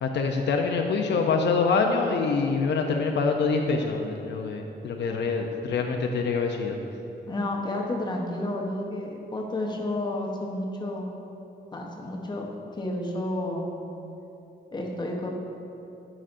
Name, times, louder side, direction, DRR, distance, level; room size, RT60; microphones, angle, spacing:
voice 1, 0.0-6.8, left 4 dB, 75° left, 2 dB, 0.5 m, -25 dB
voice 2, 7.3-11.1 11.7-12.5 12.8-13.7 14.7-15.3, left 1 dB, 25° left, 0 dB, 0.8 m, -31 dB
11.5 x 5.0 x 2.5 m, 2.8 s
wide cardioid pair, 135°, 18 cm